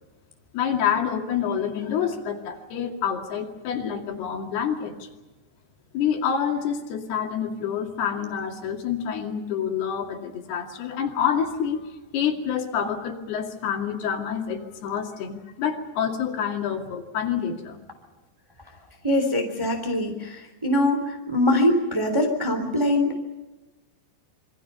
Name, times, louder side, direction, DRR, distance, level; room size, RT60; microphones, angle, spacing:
voice 1, 0.5-5.1 5.9-17.8, left 8 dB, 70° left, 2 dB, 4.4 m, -27 dB
voice 2, 19.0-23.4, left 1 dB, 10° right, 4 dB, 2.6 m, -23 dB
27.5 x 23.5 x 5.6 m, 1.1 s
omnidirectional pair, 4.7 m